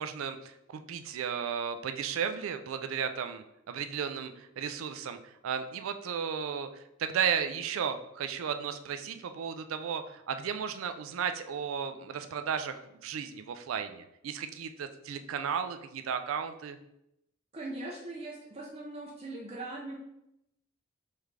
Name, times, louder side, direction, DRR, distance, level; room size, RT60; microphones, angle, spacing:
voice 1, 0.0-16.8, right 7 dB, 85° right, 9 dB, 0.4 m, -34 dB
voice 2, 17.5-19.9, right 2 dB, 30° right, -3 dB, 0.5 m, -40 dB
3.7 x 3.3 x 3.2 m, 0.83 s
head